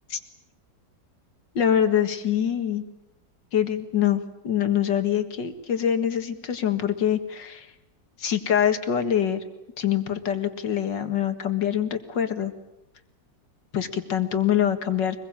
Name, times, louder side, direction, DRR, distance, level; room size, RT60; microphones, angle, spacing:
voice 1, 1.6-2.8 3.5-7.7 8.2-9.4 9.8-12.5 13.7-15.2, left 9 dB, 75° left, 8 dB, 2.4 m, -24 dB
24.5 x 21.5 x 8.8 m, 0.93 s
omnidirectional pair, 1.9 m